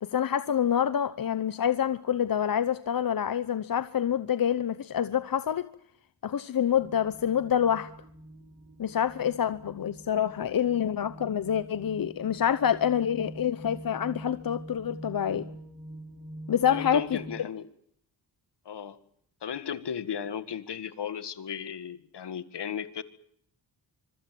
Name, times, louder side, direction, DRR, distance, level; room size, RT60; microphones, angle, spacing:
voice 1, 0.0-5.7 6.2-7.9 8.8-15.5 16.5-17.2, left 9 dB, 55° left, 1.0 m, -27 dB
sound 1, 6.7-17.4, right 1 dB, 50° right, 6.8 m, -46 dB
voice 2, 16.7-17.7 18.7-19.0 19.4-23.0, left 8 dB, 75° left, 2.0 m, -35 dB
25.0 x 23.5 x 7.8 m
wide cardioid pair, 110°, 41 cm